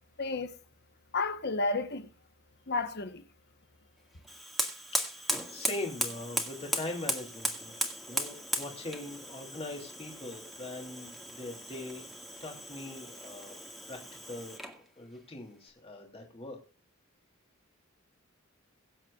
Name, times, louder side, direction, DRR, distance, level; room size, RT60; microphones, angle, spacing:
voice 1, 0.2-0.6 1.1-2.1 2.7-3.2, left 3 dB, 55° left, 1.2 m, -31 dB
Fire, 4.2-14.8, equal, ahead, 2.0 m, -37 dB
voice 2, 5.0-7.7 8.1-12.1 12.4-13.6 13.9-14.6 15.0-16.6, left 2 dB, 30° left, 2.8 m, -41 dB
23.0 x 7.7 x 2.4 m
head